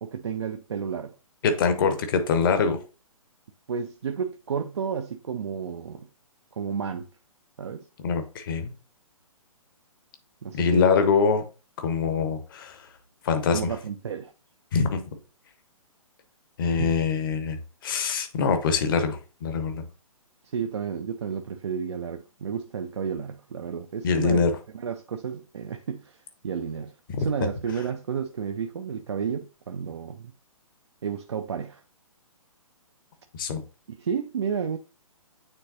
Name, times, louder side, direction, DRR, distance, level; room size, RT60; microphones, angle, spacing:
voice 1, 0.0-1.1 3.7-6.1 6.6-7.1 7.6-7.9 10.4-10.9 13.5-14.3 16.8-16.9 20.5-24.4 24.7-26.2 26.4-26.9 27.2-30.3 31.0-31.8 33.9-34.8, right 7 dB, 50° right, 0.5 m, -31 dB
voice 2, 1.4-2.8 8.0-8.7 10.5-11.4 11.8-12.8 13.2-13.7 14.7-15.0 16.6-19.8 24.0-24.6 27.1-27.3 33.4-33.6, left 5 dB, 35° left, 1.1 m, -24 dB
8.9 x 3.9 x 2.7 m
figure-of-eight pair, 130°, 18 cm